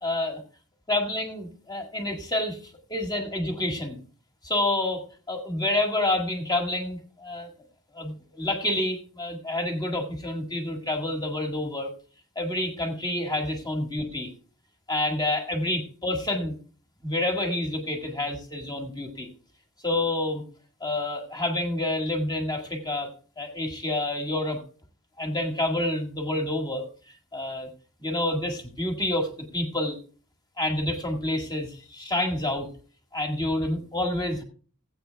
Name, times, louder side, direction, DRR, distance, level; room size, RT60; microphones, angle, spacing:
voice 1, 0.0-0.4 0.9-4.0 4.4-7.5 7.9-11.9 12.4-14.3 14.9-16.6 17.0-19.3 19.8-20.4 20.8-23.1 23.4-24.6 25.2-26.9 27.3-27.7 28.0-30.0 30.6-32.7 33.1-34.4, left 1 dB, 20° left, 2 dB, 1.8 m, -28 dB
15.0 x 8.5 x 3.4 m, 0.41 s
head